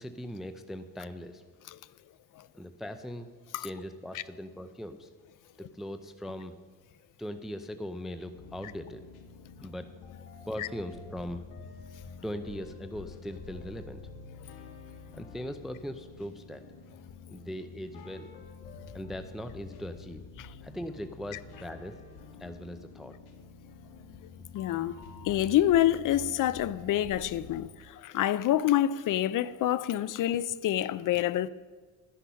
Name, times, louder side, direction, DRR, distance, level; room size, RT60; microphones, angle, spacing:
voice 1, 0.0-1.4 2.5-3.3 3.6-5.1 5.6-6.5 7.2-9.0 9.6-9.9 10.4-11.4 12.2-14.0 15.1-16.6 17.3-18.3 18.9-20.2 20.6-21.9 22.4-23.1, equal, ahead, 0.5 m, -39 dB
sound 1, 8.3-27.7, left 5 dB, 90° left, 2.0 m, -48 dB
voice 2, 24.5-24.9 25.2-31.5, left 12 dB, 60° left, 0.5 m, -27 dB
12.5 x 10.0 x 5.6 m
cardioid pair, 135°, 37 cm